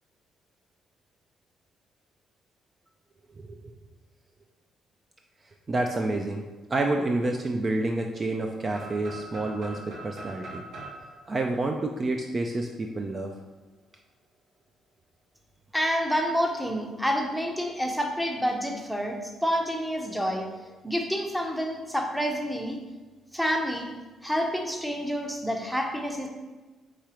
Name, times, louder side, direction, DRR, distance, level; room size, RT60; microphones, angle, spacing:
voice 1, 5.7-6.4 6.7-10.6 11.3-13.3, right 2 dB, 35° right, 3 dB, 0.4 m, -28 dB
sound 1, 8.7-12.5, right 2 dB, 75° right, 1.3 m, -43 dB
voice 2, 15.7-22.8 23.3-23.9 24.2-26.3, equal, ahead, 2 dB, 0.7 m, -28 dB
4.6 x 3.7 x 3.0 m, 1.2 s
cardioid pair, 90°, 0 cm